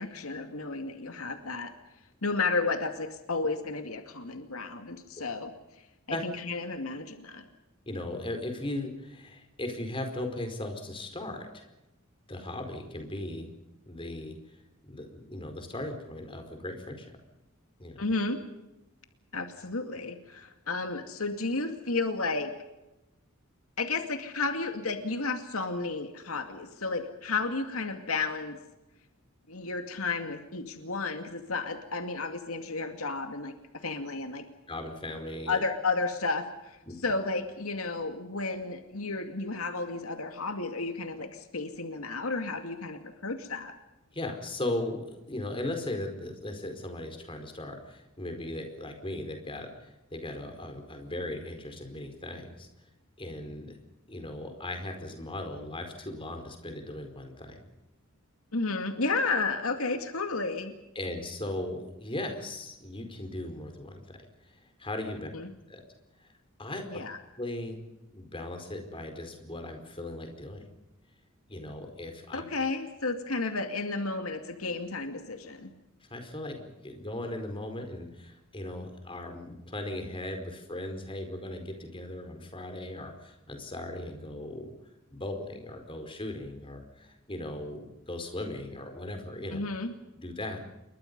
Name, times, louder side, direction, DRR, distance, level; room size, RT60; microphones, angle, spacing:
voice 1, 0.0-1.7 2.2-5.5 6.1-7.5 18.0-18.4 19.3-22.5 23.8-28.6 29.5-34.5 35.5-36.8 37.0-43.7 58.5-60.7 65.3-65.5 66.9-67.2 72.3-75.7 89.5-89.9, left 3 dB, 80° left, 6 dB, 2.4 m, -32 dB
voice 2, 7.9-11.6 12.3-13.5 13.8-14.3 14.8-17.1 17.8-18.0 34.7-35.6 36.9-37.0 44.1-52.7 53.2-53.8 54.1-57.6 60.9-64.0 64.4-65.3 65.7-65.8 66.2-66.3 66.6-67.0 67.4-67.8 68.1-70.7 71.5-72.4 76.1-84.7 85.1-89.6 90.1-90.6, left 1 dB, 25° left, 5 dB, 4.7 m, -38 dB
28.5 x 23.5 x 5.5 m, 0.97 s
head